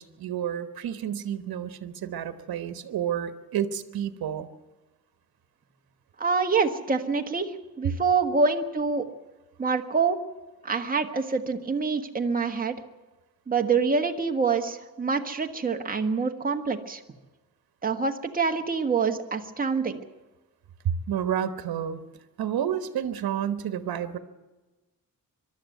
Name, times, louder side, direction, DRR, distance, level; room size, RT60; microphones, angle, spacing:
voice 1, 0.0-4.5 20.8-22.0 22.4-24.2, right 9 dB, 85° right, 10 dB, 1.3 m, -30 dB
voice 2, 6.2-9.0 9.6-10.2 10.6-12.8 13.5-17.0 17.8-20.0, right 5 dB, 25° right, 4 dB, 1.5 m, -26 dB
23.0 x 12.5 x 9.2 m, 1.2 s
wide cardioid pair, 135°, 36 cm